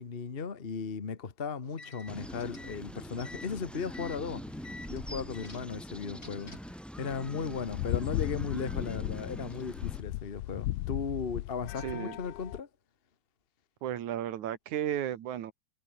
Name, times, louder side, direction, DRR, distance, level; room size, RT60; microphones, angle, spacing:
voice 1, 0.0-4.4 4.9-6.5 7.0-12.7, left 5 dB, 45° left, 0.7 m, -36 dB
sound 1, 1.6-6.8, left 3 dB, 25° left, 4.5 m, -50 dB
sound 2, 2.1-10.0, equal, ahead, 5.2 m, -43 dB
sound 3, 7.1-12.6, left 17 dB, 80° left, 2.1 m, -36 dB
voice 2, 11.8-12.2 13.8-15.5, right 10 dB, 75° right, 3.0 m, -34 dB
omnidirectional pair, 3.5 m